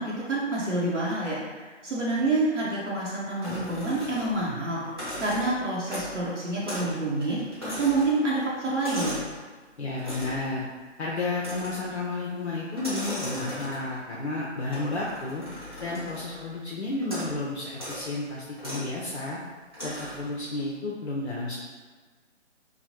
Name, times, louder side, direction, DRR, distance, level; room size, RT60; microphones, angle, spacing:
voice 1, 0.0-9.2, right 2 dB, 70° right, -6 dB, 0.9 m, -28 dB
sound 1, 3.4-4.5 4.8-6.2 6.6-7.0 7.2-9.4 10.0-10.5 11.4-11.9 12.7-14.0 14.7-16.4 17.0-17.4 17.7-18.0 18.6-18.9 19.7-20.3, equal, 20° right, 0.5 m, -37 dB
voice 2, 9.8-10.7 11.0-15.4 15.8-19.4 19.8-21.6, left 2 dB, 60° left, -5 dB, 0.6 m, -32 dB
3.1 x 2.1 x 2.7 m, 1.4 s
figure-of-eight pair, 145°, 38 cm